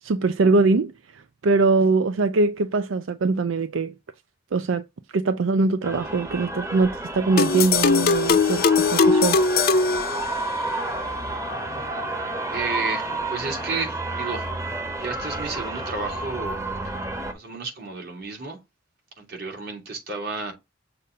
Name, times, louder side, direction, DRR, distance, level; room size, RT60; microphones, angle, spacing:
voice 1, 0.0-3.9 4.5-4.8 5.1-9.4, right 3 dB, 85° right, 0.5 m, -22 dB
sound 1, 5.8-17.3, right 2 dB, 15° right, 1.1 m, -31 dB
sound 2, 7.4-10.8, left 4 dB, 50° left, 0.6 m, -20 dB
voice 2, 12.5-14.5 15.0-16.6 17.3-18.6 19.2-20.5, right 4 dB, 55° right, 2.9 m, -32 dB
6.8 x 2.6 x 5.5 m
head